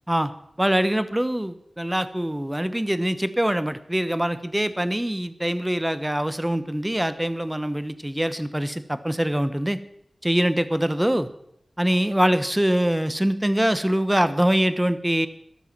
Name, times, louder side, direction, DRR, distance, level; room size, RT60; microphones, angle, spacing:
voice 1, 0.6-9.8 10.2-11.3 11.8-15.3, right 1 dB, 10° right, 12 dB, 1.0 m, -23 dB
12.5 x 12.5 x 6.1 m, 0.72 s
wide cardioid pair, 85°, 0 cm